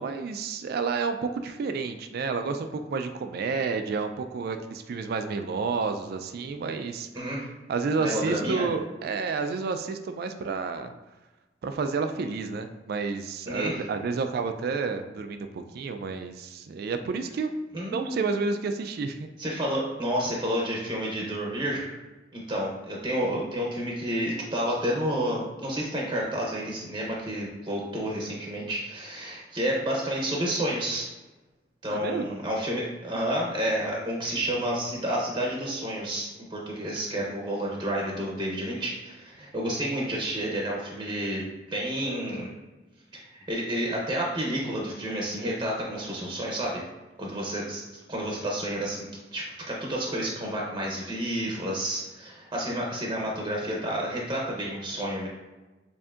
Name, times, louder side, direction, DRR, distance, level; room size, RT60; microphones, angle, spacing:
voice 1, 0.0-7.3 7.7-10.9 11.6-17.5 17.9-19.3 31.9-32.4, right 4 dB, 60° right, 7 dB, 0.3 m, -30 dB
voice 2, 7.1-7.5 8.0-8.7 13.5-13.8 17.7-18.2 19.4-21.9 22.3-31.1 31.8-42.5 43.1-46.8 47.2-49.1 49.3-55.3, equal, 25° right, -2 dB, 0.7 m, -30 dB
6.8 x 2.6 x 2.4 m, 1.1 s
head